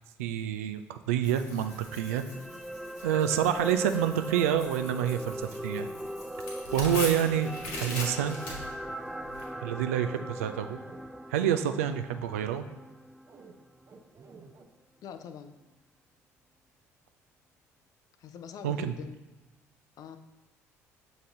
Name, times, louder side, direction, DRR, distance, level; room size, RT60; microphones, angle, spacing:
voice 1, 0.2-2.2 3.0-5.4 5.6-5.9 6.7-7.5 7.8-8.4 9.6-10.8 11.3-12.7 18.6-18.9, right 10 dB, 75° right, 9 dB, 0.4 m, -28 dB
Tearing, 1.2-9.4, left 2 dB, 70° left, 1.6 m, -41 dB
sound 1, 1.6-13.9 14.3-14.4, right 1 dB, ahead, 0.3 m, -40 dB
sound 2, 5.3-5.9 6.8-7.1 7.6-7.9 8.4-8.6 8.8-9.0 9.5-11.1 13.3-13.5 13.9-14.7, right 5 dB, 35° right, 0.7 m, -52 dB
voice 2, 15.0-15.6 18.2-19.2 20.0-20.2, left 7 dB, 50° left, 10 dB, 0.5 m, -43 dB
6.8 x 4.0 x 3.8 m, 1.1 s
figure-of-eight pair, 55°, 8 cm